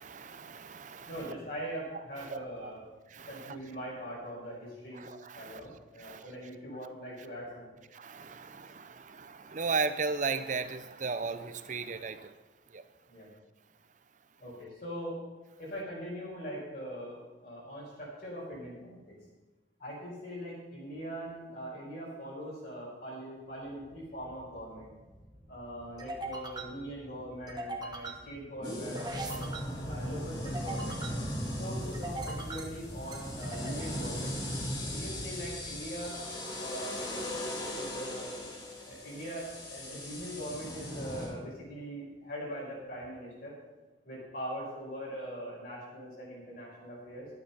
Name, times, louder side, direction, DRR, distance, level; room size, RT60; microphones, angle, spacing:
voice 1, 0.0-1.1 2.3-2.7 3.1-3.6 4.9-5.6 6.0-6.3 7.9-12.3 12.7-12.8, right 4 dB, 40° right, 11 dB, 0.6 m, -36 dB
voice 2, 1.1-2.8 3.1-5.0 5.3-7.7 13.1-13.3 14.4-15.2 15.6-19.1 19.8-24.9 25.5-29.5 29.8-31.0 31.6-34.4 34.9-36.2 36.5-37.0 37.2-38.3 38.9-43.5 44.0-47.3, equal, 55° left, -5 dB, 5.1 m, -42 dB
sound 1, 23.7-36.4, right 1 dB, 20° right, 1.2 m, -43 dB
sound 2, 28.6-41.3, equal, 75° left, 4.2 m, -38 dB
12.5 x 9.6 x 5.6 m, 1.2 s
head